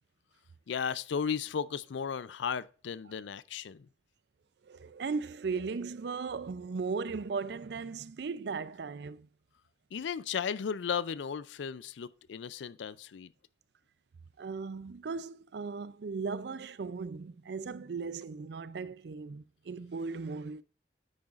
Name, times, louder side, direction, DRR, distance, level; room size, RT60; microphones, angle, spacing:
voice 1, 0.7-3.9 9.9-13.3, left 7 dB, 80° left, 0.4 m, -35 dB
voice 2, 4.7-9.3 14.4-20.6, right 4 dB, 65° right, 0.4 m, -37 dB
9.5 x 8.7 x 2.4 m
head